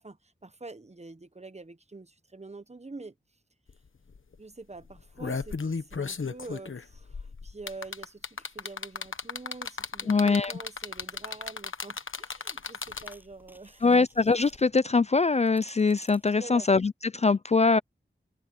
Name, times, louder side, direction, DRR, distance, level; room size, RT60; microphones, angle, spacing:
voice 1, 0.0-3.1 4.4-14.0 16.4-16.7, right 3 dB, 35° right, 1.0 m, -46 dB
sound 1, 3.7-3.8 4.1-4.3 4.9-13.3 14.5-14.6, left 5 dB, 85° left, 1.1 m, -35 dB
voice 2, 10.1-10.5 13.8-17.8, left 4 dB, 35° left, 0.4 m, -23 dB
sound 2, 11.9-12.0 12.3-16.8, equal, 10° right, 7.8 m, -58 dB
open air
wide cardioid pair, 65°, 20 cm